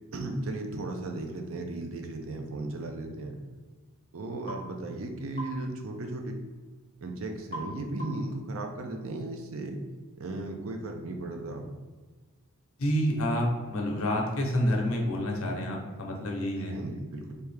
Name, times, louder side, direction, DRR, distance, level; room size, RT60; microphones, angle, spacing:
voice 1, 0.1-3.4 4.1-6.4 7.0-9.8 10.2-11.7 16.6-17.4, right 2 dB, 70° right, 4 dB, 0.5 m, -36 dB
sound 1, 4.5-4.7 5.4-5.6 7.5-7.7 8.0-8.3, right 1 dB, 25° left, 1.0 m, -39 dB
voice 2, 12.8-16.8, equal, 70° left, 0 dB, 0.8 m, -28 dB
3.3 x 2.7 x 3.3 m, 1.3 s
head